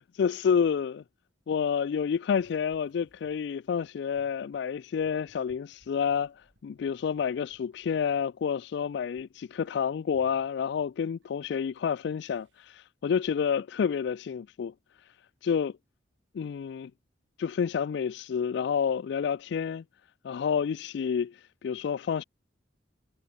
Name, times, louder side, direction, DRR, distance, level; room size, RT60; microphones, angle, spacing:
voice 1, 0.1-1.0 1.5-14.7 15.4-15.7 16.3-16.9 17.4-19.8 20.2-22.2, left 7 dB, 65° left, 0.3 m, -29 dB
sound 1, 2.3-12.9, right 1 dB, 80° right, 6.0 m, -68 dB
head